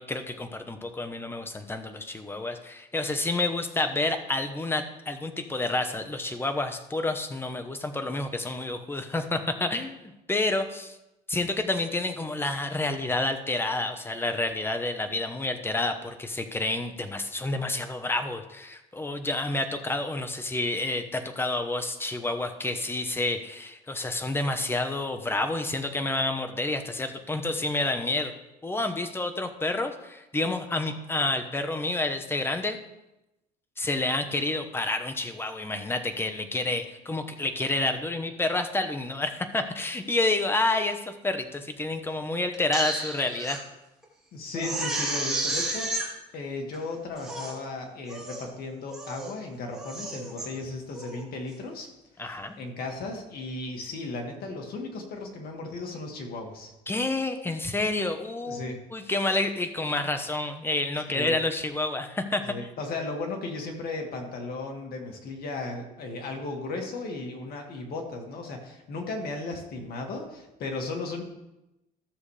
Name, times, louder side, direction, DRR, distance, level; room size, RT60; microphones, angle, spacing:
voice 1, 0.0-10.0 10.3-11.0 11.3-28.3 28.6-32.8 33.8-43.6 52.2-52.6 56.9-62.5, left 2 dB, 15° left, 7 dB, 1.0 m, -29 dB
Crying sobbing, 42.5-43.6 44.0-44.1 44.5-46.1 46.7-46.8 47.2-47.6 48.1-48.5 48.9-49.3 49.7-50.5 50.9-51.2, right 2 dB, 5° right, 2.3 m, -32 dB
voice 2, 44.3-51.9 52.2-56.7 58.5-58.8 61.1-61.4 62.5-71.2, left 3 dB, 65° left, 2 dB, 2.1 m, -36 dB
14.0 x 7.1 x 3.4 m, 0.95 s
cardioid pair, 110°, 17 cm